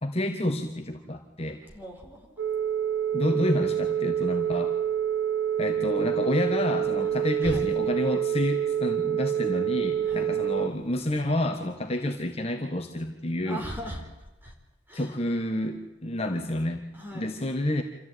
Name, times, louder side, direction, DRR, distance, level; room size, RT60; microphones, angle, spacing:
voice 1, 0.0-1.6 3.1-4.8 5.6-13.6 14.9-16.8 17.1-17.8, left 1 dB, 30° left, 4 dB, 1.6 m, -29 dB
voice 2, 1.7-2.4 7.4-7.7 10.0-10.3 13.4-14.5 14.9-15.2 16.9-17.3, right 1 dB, 10° right, 0 dB, 4.9 m, -39 dB
Telephone, 2.4-10.7, right 9 dB, 60° right, 1.3 m, -27 dB
27.0 x 14.5 x 9.3 m, 1.0 s
head